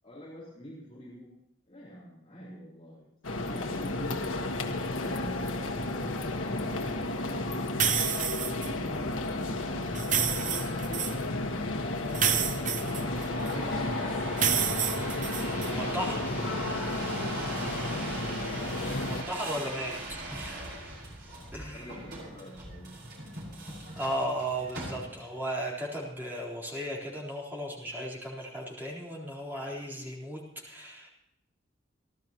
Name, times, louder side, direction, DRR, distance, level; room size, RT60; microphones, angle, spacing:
voice 1, 0.0-1.3 1.6-4.2 4.9-8.0 8.5-12.4 13.3-14.9 18.7-19.3 20.3-20.8 21.3-23.0, equal, 30° left, -6 dB, 4.5 m, -47 dB
sound 1, 3.2-19.2, left 2 dB, 85° left, 1.5 m, -32 dB
sound 2, 7.8-8.7 9.9-11.1 12.1-13.5 14.4-15.7, right 8 dB, 40° right, 0.8 m, -29 dB
sound 3, 10.8-25.4 26.0-26.5, right 2 dB, 55° right, 6.2 m, -41 dB
voice 2, 15.7-16.2 19.0-19.9 20.3-20.6 21.5-21.9 23.9-30.4 30.7-31.1, equal, 10° right, -4 dB, 3.9 m, -35 dB
29.0 x 12.0 x 3.0 m, 0.77 s
head